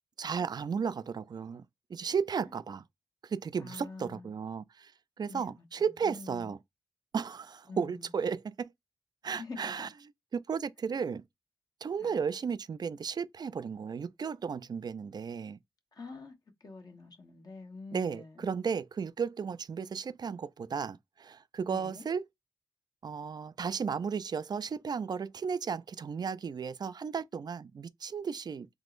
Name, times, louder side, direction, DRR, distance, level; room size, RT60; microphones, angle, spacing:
voice 1, 0.2-1.6 1.9-2.8 3.2-4.9 5.2-6.6 7.1-8.7 9.2-9.9 10.3-11.2 11.8-15.6 17.9-22.2 23.0-28.7, right 6 dB, 50° right, 0.4 m, -34 dB
voice 2, 3.6-4.3 5.3-6.5 7.7-8.1 9.3-9.9 12.0-12.2 15.9-16.3 16.6-18.5 21.7-22.0, left 3 dB, 50° left, 1.1 m, -46 dB
3.6 x 2.9 x 2.5 m
cardioid pair, 55°, 9 cm